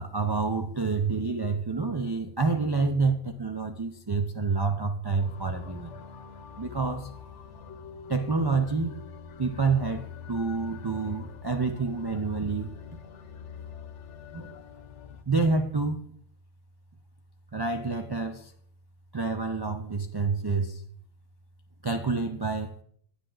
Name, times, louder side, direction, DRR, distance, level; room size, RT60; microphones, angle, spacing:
voice 1, 0.0-5.9 6.6-7.1 8.1-8.9 9.4-12.7 14.3-14.5 15.3-16.0 17.5-18.5 19.1-20.8 21.8-22.8, right 4 dB, 40° right, 6 dB, 0.3 m, -28 dB
sound 1, 5.1-15.2, left 7 dB, 70° left, 1.0 m, -44 dB
10.0 x 8.7 x 3.8 m, 0.63 s
omnidirectional pair, 1.3 m